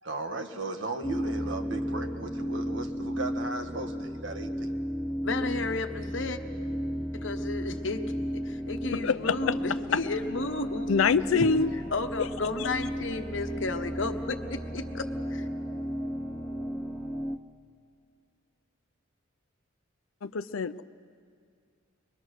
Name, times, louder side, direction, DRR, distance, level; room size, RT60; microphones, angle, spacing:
voice 1, 0.0-4.7, right 3 dB, 65° right, 6 dB, 1.4 m, -36 dB
sound 1, 1.0-17.4, equal, ahead, 0.7 m, -34 dB
voice 2, 5.2-6.4 7.1-8.1 8.5-10.9 11.3-11.4 11.9-15.5, left 3 dB, 65° left, 7 dB, 1.1 m, -33 dB
voice 3, 8.9-9.5 10.9-11.7 20.2-20.8, left 5 dB, 85° left, 14 dB, 0.5 m, -25 dB
23.0 x 22.0 x 6.4 m, 2.2 s
head